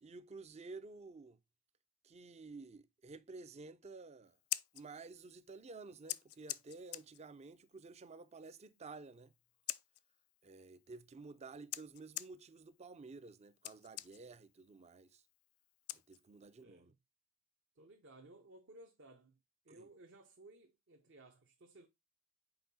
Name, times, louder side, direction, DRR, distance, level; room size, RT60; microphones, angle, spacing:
voice 1, 0.0-1.4 2.0-4.4 4.7-9.3 10.4-15.2 15.9-16.9 19.7-19.9, right 3 dB, 30° right, 0.5 m, -52 dB
Scissors, 4.3-16.6, left 17 dB, 90° left, 0.4 m, -49 dB
voice 2, 16.6-17.0 17.8-19.4 19.6-21.9, right 2 dB, 60° right, 0.9 m, -59 dB
5.7 x 4.6 x 4.1 m
head